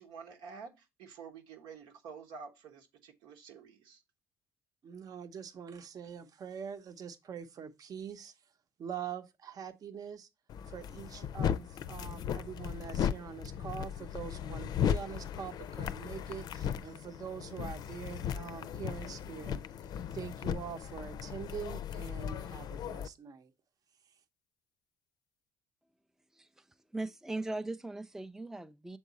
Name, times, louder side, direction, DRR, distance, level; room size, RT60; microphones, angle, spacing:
voice 1, 0.0-4.0, right 5 dB, 80° right, 1.3 m, -49 dB
voice 2, 4.8-8.3 8.8-10.3 10.7-19.6 20.1-23.5, right 7 dB, 50° right, 0.9 m, -44 dB
sound 1, 10.5-23.1, left 9 dB, 55° left, 0.5 m, -37 dB
voice 3, 26.3-26.6 26.9-29.0, right 2 dB, 5° right, 0.5 m, -39 dB
7.3 x 3.6 x 4.0 m
supercardioid pair, 80°, 8 cm